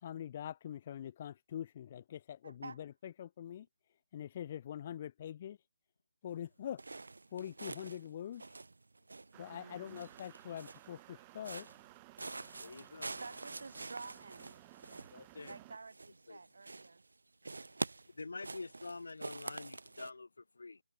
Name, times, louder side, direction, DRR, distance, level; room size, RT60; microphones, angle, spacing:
voice 1, 0.0-3.7 4.1-5.6 6.2-6.8 7.3-8.4 9.4-11.7, left 10 dB, 20° left, 0.3 m, -44 dB
voice 2, 2.4-2.8 9.3-10.1 13.1-14.6 15.4-17.0, right 4 dB, 55° right, 7.4 m, -50 dB
sound 1, 6.8-8.1 8.3-9.5 9.9-10.9 11.4-11.9 12.2-16.4 16.6-17.1 17.4-20.1, right 3 dB, 85° right, 2.6 m, -46 dB
sound 2, 9.3-15.8, right 25 dB, 10° right, 3.1 m, -58 dB
voice 3, 12.6-13.2 15.1-15.6 16.3-16.4 18.1-20.8, left 3 dB, 65° left, 0.6 m, -47 dB
hypercardioid pair, 180°, 0 cm